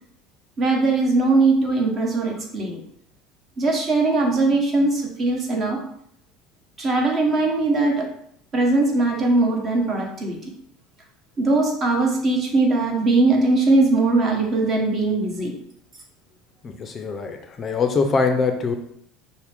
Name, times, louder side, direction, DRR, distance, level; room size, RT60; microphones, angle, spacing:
voice 1, 0.6-2.8 3.6-5.8 6.8-8.0 8.5-10.4 11.4-15.5, right 2 dB, 35° right, 0 dB, 1.3 m, -20 dB
voice 2, 16.6-18.7, left 4 dB, 30° left, 6 dB, 0.5 m, -23 dB
5.7 x 2.1 x 3.5 m, 0.70 s
supercardioid pair, 100°, 0 cm